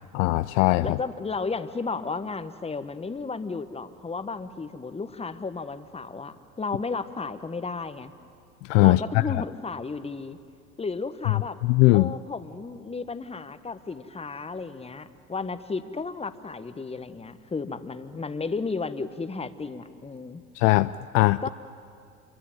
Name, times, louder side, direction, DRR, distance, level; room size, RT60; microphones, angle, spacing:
voice 1, 0.1-1.0 8.7-9.0 9.3-9.4 11.6-12.1 20.6-21.5, left 20 dB, 60° left, 14 dB, 0.6 m, -20 dB
voice 2, 0.8-8.1 8.8-10.4 10.8-11.6 11.9-20.4 21.4-21.5, left 4 dB, 15° left, 12 dB, 1.3 m, -33 dB
28.0 x 23.0 x 9.2 m, 2.3 s
hypercardioid pair, 75°, 43 cm